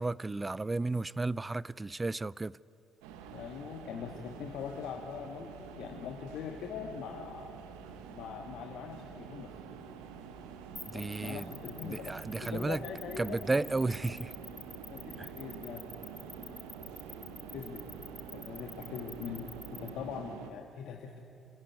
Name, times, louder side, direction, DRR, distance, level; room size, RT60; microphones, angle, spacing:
voice 1, 0.0-2.6 10.9-11.5 11.8-12.8 13.2-14.3 15.2-15.3, right 3 dB, 20° right, 0.4 m, -33 dB
sound 1, 3.0-20.5, right 6 dB, 75° right, 1.4 m, -47 dB
voice 2, 3.3-7.5 8.1-9.6 10.9-12.1 12.4-13.5 14.9-15.8 17.5-17.8 18.3-21.2, left 7 dB, 65° left, 1.6 m, -42 dB
sound 2, 10.8-19.9, left 2 dB, 20° left, 0.8 m, -47 dB
28.5 x 14.5 x 9.4 m
hypercardioid pair, 45°, 0 cm